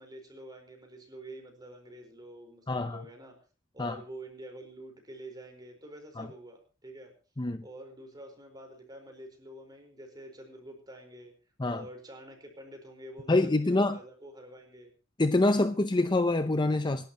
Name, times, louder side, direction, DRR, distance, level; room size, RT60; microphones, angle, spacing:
voice 1, 0.0-3.4 3.7-7.1 7.6-11.3 11.7-14.9, right 1 dB, 20° right, 4 dB, 4.6 m, -47 dB
voice 2, 2.7-3.0 3.8-3.9 6.2-6.3 7.4-7.6 11.6-11.8 13.3-14.0 15.2-17.1, left 2 dB, 25° left, 10 dB, 0.7 m, -26 dB
26.0 x 12.0 x 3.0 m, 0.36 s
head